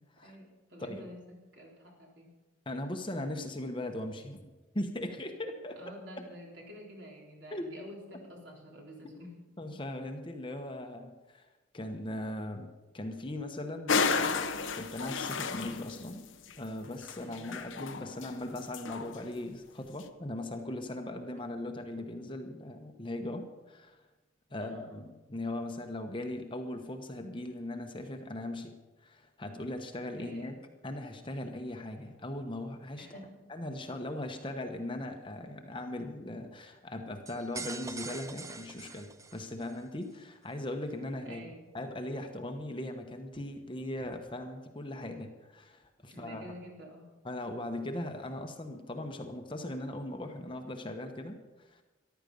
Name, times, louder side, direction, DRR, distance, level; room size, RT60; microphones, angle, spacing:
voice 1, 0.2-1.2 1.5-2.3 5.8-9.3 9.7-9.8 17.2-17.6 24.5-25.0 30.2-30.5 33.0-33.4 41.2-41.7 46.1-47.1, equal, 60° right, -1 dB, 3.7 m, -49 dB
voice 2, 2.7-4.4 4.7-6.0 7.5-7.6 9.6-11.5 11.7-14.4 14.7-16.3 16.6-24.0 24.5-30.5 30.8-33.2 33.5-41.4 41.7-46.5 47.2-51.8, left 1 dB, 25° left, 5 dB, 1.0 m, -39 dB
sound 1, 13.9-16.0 16.5-16.6 17.0-18.3 18.6-19.2, left 5 dB, 70° left, 0.9 m, -32 dB
sound 2, 37.3-39.8, right 4 dB, 15° right, 0.5 m, -43 dB
14.0 x 11.5 x 5.4 m, 1.2 s
head